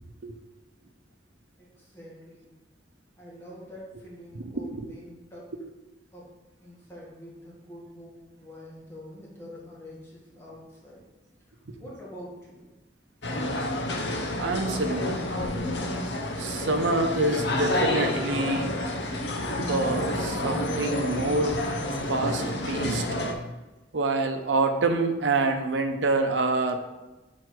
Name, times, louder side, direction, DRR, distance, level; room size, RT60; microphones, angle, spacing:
voice 1, 1.6-2.6 3.2-5.5 6.1-6.3 6.6-11.0 11.5-12.7, equal, 15° left, -6 dB, 1.7 m, -46 dB
sound 1, 13.2-23.3, left 1 dB, 65° left, 0.9 m, -29 dB
voice 2, 14.4-15.2 16.4-18.7 19.6-21.6 22.1-23.0 23.9-26.8, right 2 dB, 80° right, 5 dB, 0.7 m, -26 dB
6.3 x 4.6 x 4.7 m, 1.1 s
head